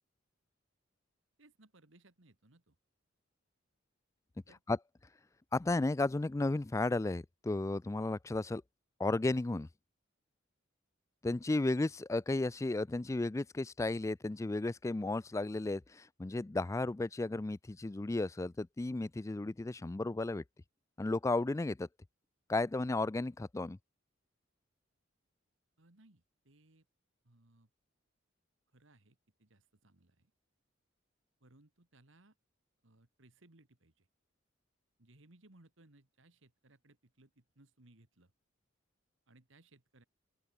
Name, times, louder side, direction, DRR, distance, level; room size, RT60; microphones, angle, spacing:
voice 1, 1.4-2.8 4.5-4.6 25.8-26.9 27.2-27.7 28.7-30.3 31.4-32.4 32.8-34.1 35.0-38.3 39.3-40.0, right 2 dB, 70° right, 2.1 m, -64 dB
voice 2, 5.5-8.6 9.0-9.7 11.2-20.4 21.0-21.9 22.5-23.8, left 2 dB, 15° left, 0.3 m, -34 dB
open air
head